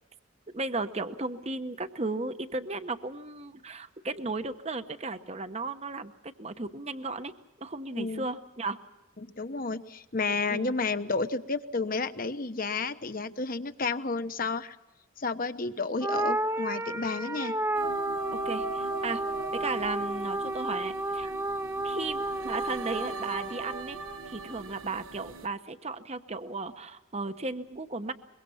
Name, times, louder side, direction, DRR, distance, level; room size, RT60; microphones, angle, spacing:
voice 1, 0.5-7.3 7.6-8.8 10.5-10.8 18.3-19.2 19.5-21.3 21.8-24.0 24.2-28.1, right 3 dB, 30° right, 10 dB, 0.9 m, -35 dB
voice 2, 8.0-8.3 9.2-14.8 15.2-17.5, left 3 dB, 45° left, 10 dB, 1.0 m, -31 dB
sound 1, 16.0-24.6, right 2 dB, 15° right, 0.7 m, -32 dB
sound 2, 17.7-25.5, right 4 dB, 90° right, 1.2 m, -42 dB
23.5 x 23.0 x 5.7 m, 1.0 s
head